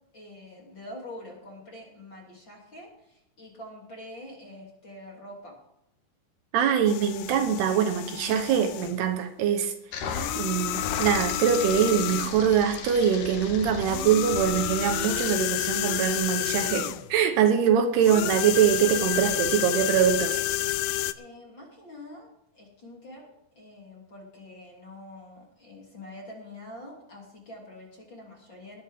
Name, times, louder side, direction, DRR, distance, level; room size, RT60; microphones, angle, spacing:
voice 1, 0.1-5.5 21.2-22.3 22.5-23.3 23.5-28.8, left 1 dB, 30° left, 3.1 m, -45 dB
voice 2, 6.5-9.7 10.3-20.4, right 8 dB, 75° right, 2.9 m, -23 dB
sound 1, 6.9-9.0 10.0-12.5 13.8-17.1 18.0-21.1, left 15 dB, 80° left, 2.1 m, -30 dB
sound 2, 9.9-15.3, left 5 dB, 60° left, 2.4 m, -36 dB
20.5 x 11.0 x 3.6 m
omnidirectional pair, 4.9 m